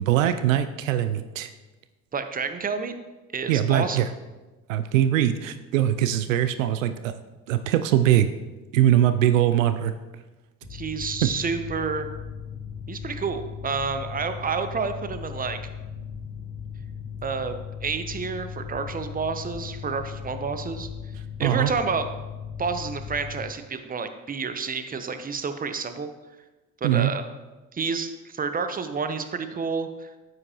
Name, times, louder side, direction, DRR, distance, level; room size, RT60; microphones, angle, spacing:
voice 1, 0.0-1.5 3.5-4.1 4.7-7.1 7.5-8.3 8.7-9.9 21.4-21.7 26.8-27.1, right 11 dB, 85° right, 11 dB, 0.5 m, -22 dB
voice 2, 2.1-2.9 3.3-4.0 10.7-12.1 12.9-15.6 17.2-17.6 17.8-20.9 21.4-22.1 22.6-26.1 26.8-27.3 27.7-30.1, right 5 dB, 20° right, 9 dB, 0.8 m, -29 dB
Mechanical fan, 10.6-23.4, left 7 dB, 75° left, 1.7 m, -37 dB
9.5 x 7.9 x 3.0 m, 1.2 s
hypercardioid pair, 55°, 39 cm